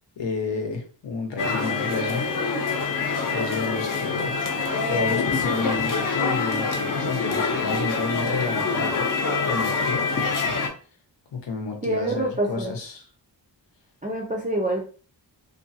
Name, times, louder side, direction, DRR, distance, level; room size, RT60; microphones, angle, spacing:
voice 1, 0.2-2.3 2.7-2.9 3.3-4.4 4.9-9.1 9.4-10.4 11.3-13.0, left 4 dB, 85° left, 2 dB, 0.9 m, -31 dB
sound 1, 1.4-10.7, left 4 dB, 50° left, 0.7 m, -25 dB
voice 2, 11.8-12.7 14.0-14.9, right 1 dB, 20° right, -1 dB, 0.4 m, -26 dB
2.6 x 2.5 x 2.6 m, 0.39 s
wide cardioid pair, 110°, 42 cm